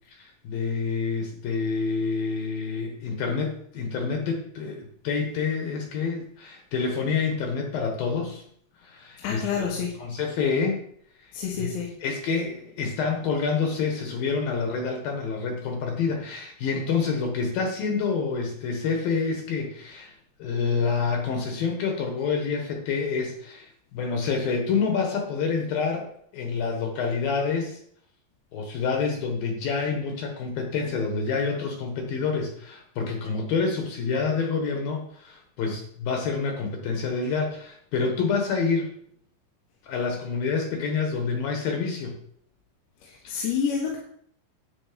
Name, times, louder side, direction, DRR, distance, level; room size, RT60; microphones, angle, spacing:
voice 1, 0.1-8.4 8.8-9.7 10.0-10.8 11.2-11.3 11.6-11.7 12.0-20.1 20.4-27.8 28.5-38.9 39.8-42.2 43.2-43.5, left 5 dB, 65° left, 3 dB, 3.0 m, -27 dB
voice 2, 9.2-9.9 11.3-11.9 43.0-44.0, left 6 dB, 85° left, -2 dB, 3.9 m, -28 dB
10.5 x 8.7 x 5.2 m, 0.65 s
omnidirectional pair, 5.0 m